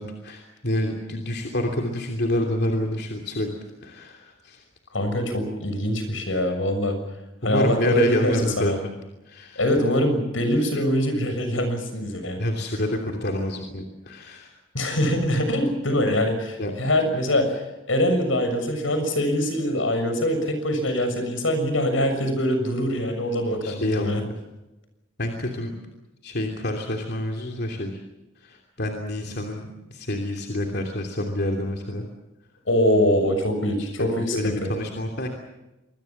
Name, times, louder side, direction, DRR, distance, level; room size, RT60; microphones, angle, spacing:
voice 1, 0.0-3.5 3.8-4.6 7.4-8.7 9.2-9.6 12.4-14.5 16.6-16.7 23.6-24.1 25.2-25.7 26.2-28.0 28.4-32.1 33.8-35.3, left 1 dB, 55° left, 2 dB, 3.0 m, -28 dB
voice 2, 4.9-7.0 7.4-8.8 9.5-12.4 14.7-17.6 17.9-24.2 32.7-34.7, equal, 85° left, 8 dB, 6.7 m, -23 dB
26.5 x 22.0 x 7.3 m, 0.98 s
head